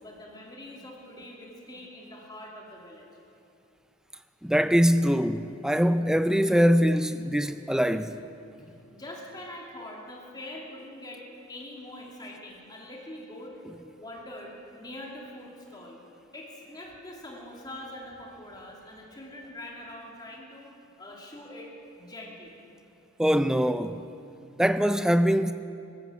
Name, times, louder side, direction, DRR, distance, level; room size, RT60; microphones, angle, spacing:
voice 1, 0.0-3.1 8.9-13.6 13.9-16.0 16.3-20.7 21.0-21.7 22.0-22.5, left 1 dB, 20° left, 2.4 m, -43 dB
voice 2, 4.4-8.2 23.2-24.0 24.6-25.5, equal, 5° right, 0.4 m, -23 dB
16.5 x 14.5 x 6.1 m
head